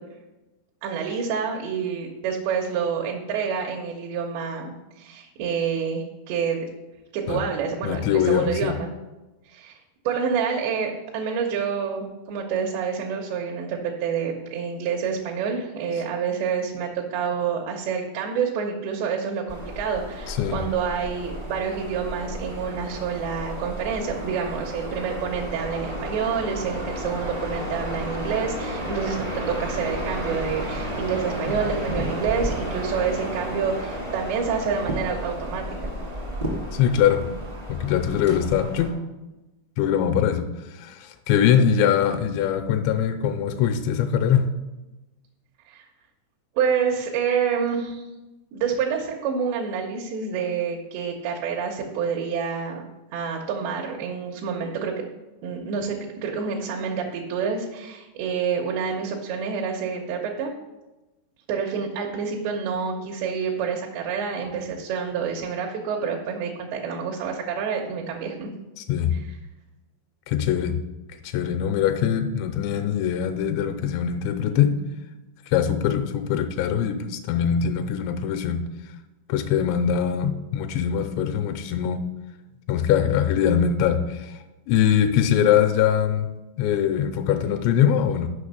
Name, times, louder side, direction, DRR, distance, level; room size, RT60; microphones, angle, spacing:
voice 1, 0.8-6.7 7.1-8.9 9.5-9.8 10.1-35.9 45.7-45.9 46.6-48.1 48.5-52.9 53.1-54.9 55.4-60.6 61.5-68.5, right 6 dB, 80° right, 1 dB, 3.0 m, -28 dB
voice 2, 7.8-8.7 20.3-20.6 36.7-37.2 37.7-39.0 39.8-40.5 40.7-44.5 68.8-69.1 70.3-70.8 71.2-74.8 75.5-78.6 79.3-82.0 82.7-84.4 84.7-86.3 86.6-88.3, left 9 dB, 90° left, 6 dB, 2.9 m, -22 dB
sound 1, 19.5-38.9, equal, 50° right, 0.5 m, -32 dB
7.0 x 5.5 x 6.6 m, 1.1 s
omnidirectional pair, 5.1 m